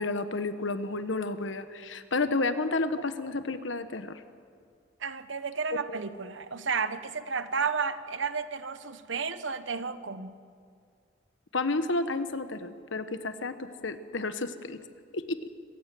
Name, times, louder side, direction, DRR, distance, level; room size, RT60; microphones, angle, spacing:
voice 1, 0.0-4.2 11.5-14.8 15.1-15.4, left 3 dB, 75° left, 10 dB, 1.2 m, -31 dB
voice 2, 5.0-10.3, right 5 dB, 75° right, 12 dB, 1.1 m, -32 dB
26.0 x 16.0 x 7.7 m, 2.2 s
head